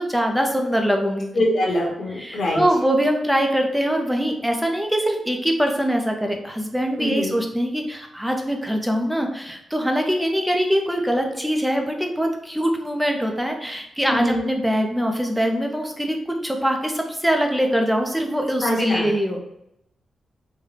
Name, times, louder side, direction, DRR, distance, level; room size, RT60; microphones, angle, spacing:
voice 1, 0.0-1.3 2.2-19.4, equal, ahead, 3 dB, 0.5 m, -23 dB
voice 2, 1.3-2.6 7.0-7.3 14.1-14.5 18.6-19.1, left 1 dB, 55° left, -2 dB, 1.0 m, -23 dB
3.8 x 2.1 x 3.3 m, 0.81 s
wide cardioid pair, 115°, 0 cm